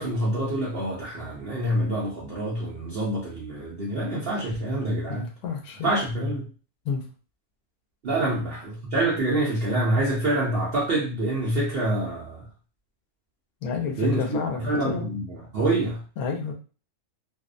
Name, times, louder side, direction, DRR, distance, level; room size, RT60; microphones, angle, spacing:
voice 1, 0.0-5.3 5.8-6.5 8.0-12.4 14.0-16.0, right 1 dB, 65° right, -5 dB, 0.6 m, -26 dB
voice 2, 5.1-5.9 6.9-7.0 13.6-15.1 16.2-16.5, left 5 dB, 75° left, 1 dB, 1.0 m, -30 dB
2.6 x 2.1 x 2.4 m, 0.37 s
omnidirectional pair, 1.6 m